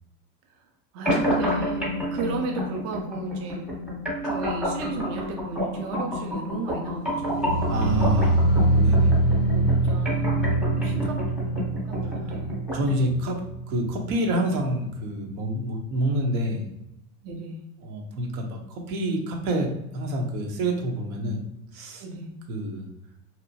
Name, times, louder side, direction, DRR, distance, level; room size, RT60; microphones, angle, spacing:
voice 1, 0.9-3.7 4.2-7.7 8.9-10.4 10.6-11.2 11.8-12.6 17.2-17.6 22.0-22.3, right 3 dB, 40° right, 2 dB, 0.5 m, -35 dB
sound 1, 1.1-13.1, equal, ahead, 0.8 m, -29 dB
sound 2, 7.2-14.3 14.6-15.0 15.4-15.5, right 2 dB, 45° left, 0.4 m, -24 dB
voice 2, 7.7-8.5 8.8-9.2 10.9-11.0 12.7-16.7 17.8-21.4 21.7-22.0 22.5-22.9, right 1 dB, 80° right, 1 dB, 0.9 m, -27 dB
2.8 x 2.1 x 2.7 m, 0.86 s
supercardioid pair, 120°, 41 cm